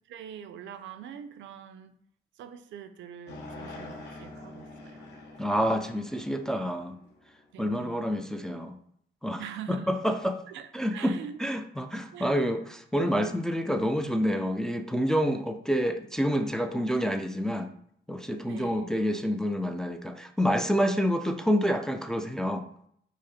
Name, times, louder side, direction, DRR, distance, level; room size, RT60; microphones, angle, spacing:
voice 1, 0.1-1.9 2.4-5.0 7.5-8.1 9.4-9.9 10.5-11.4 12.1-12.5 18.4-19.0, right 8 dB, 75° right, 10 dB, 0.5 m, -44 dB
sound 1, 3.3-7.6, left 2 dB, 60° left, 1.1 m, -45 dB
voice 2, 5.4-7.0 7.6-8.8 9.2-9.4 9.7-10.4 10.7-12.6 12.9-17.7 18.1-22.7, equal, 5° left, 6 dB, 0.3 m, -28 dB
5.0 x 2.0 x 4.1 m, 0.67 s
cardioid pair, 90°, 20 cm